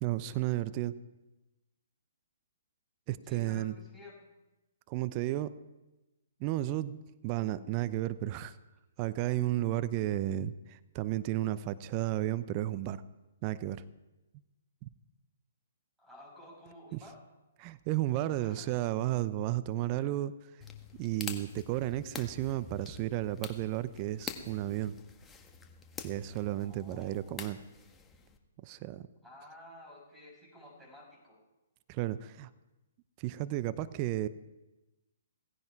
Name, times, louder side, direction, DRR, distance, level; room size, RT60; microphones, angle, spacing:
voice 1, 0.0-1.0 3.1-3.7 4.9-5.5 6.4-7.0 7.2-8.6 9.0-13.0 13.4-13.8 14.8-14.9 16.9-17.0 17.6-20.3 21.0-24.9 26.0-27.6 28.6-29.1 31.9-32.5 33.2-34.3, right 14 dB, 35° right, 15 dB, 0.7 m, -33 dB
voice 2, 3.2-4.2 16.0-17.2 18.4-18.7 20.0-20.1 26.6-27.5 29.2-31.4, left 1 dB, 5° right, -1 dB, 6.8 m, -52 dB
sound 1, 20.6-28.4, left 5 dB, 15° left, 1.6 m, -47 dB
17.5 x 16.0 x 4.8 m, 1.0 s
figure-of-eight pair, 125°, 0 cm